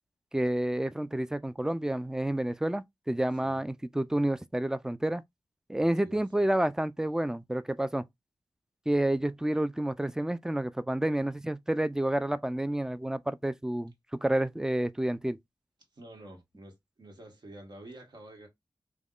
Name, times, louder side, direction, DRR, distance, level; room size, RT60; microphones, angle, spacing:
voice 1, 0.3-5.2 5.7-8.0 8.9-15.4, right 1 dB, 5° right, 0.3 m, -29 dB
voice 2, 5.8-6.2 15.9-18.5, right 1 dB, 60° right, 1.2 m, -49 dB
3.4 x 2.2 x 2.3 m
cardioid pair, 45°, 8 cm